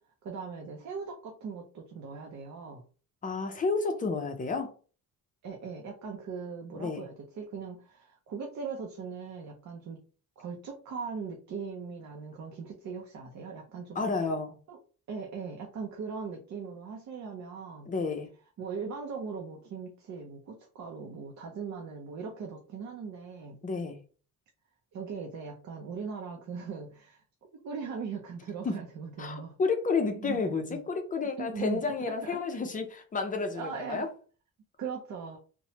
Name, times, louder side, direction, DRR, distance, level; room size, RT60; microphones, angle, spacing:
voice 1, 0.2-2.8 5.4-10.0 10.4-14.0 14.7-14.8 15.1-17.9 18.6-23.6 24.9-27.2 27.5-29.6 30.1-30.4 30.7-30.8 31.4-31.8 32.1-32.4 33.5-34.1 34.8-35.4, right 5 dB, 55° right, 0.6 m, -39 dB
voice 2, 3.2-4.7 6.7-7.0 14.0-14.6 17.9-18.3 23.6-24.0 28.6-28.7 29.2-34.1, left 4 dB, 25° left, 0.5 m, -31 dB
3.0 x 2.1 x 2.8 m
cardioid pair, 145°, 34 cm